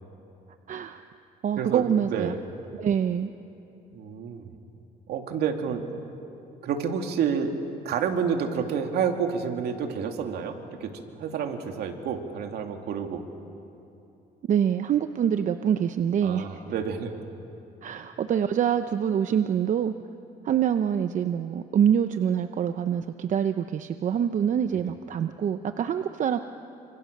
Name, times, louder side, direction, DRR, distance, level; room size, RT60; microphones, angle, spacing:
voice 1, 0.7-1.0 1.4-2.3 2.8-3.3 14.5-16.6 17.8-19.9 20.4-26.4, right 8 dB, 50° right, 9 dB, 0.8 m, -25 dB
voice 2, 1.6-2.4 3.9-4.6 5.1-5.8 6.6-7.5 7.8-10.6 10.8-13.2 16.2-17.1 24.8-24.9, right 7 dB, 70° right, 4 dB, 2.5 m, -29 dB
29.0 x 26.0 x 6.7 m, 2.9 s
cardioid pair, 110°, 17 cm